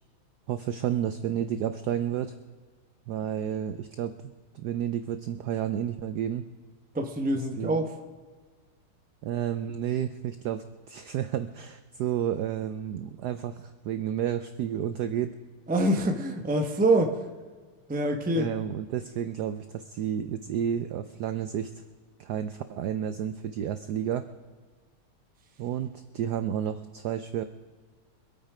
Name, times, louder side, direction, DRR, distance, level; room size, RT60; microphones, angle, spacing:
voice 1, 0.5-2.3 3.1-4.1 4.5-6.5 7.6-7.7 9.2-15.3 18.4-21.8 22.2-24.3 25.6-27.4, right 10 dB, 85° right, 10 dB, 0.8 m, -31 dB
voice 2, 6.9-7.9 15.7-17.2 17.9-18.5, right 1 dB, 10° right, 4 dB, 0.4 m, -25 dB
24.5 x 8.9 x 5.0 m, 1.5 s
omnidirectional pair, 2.4 m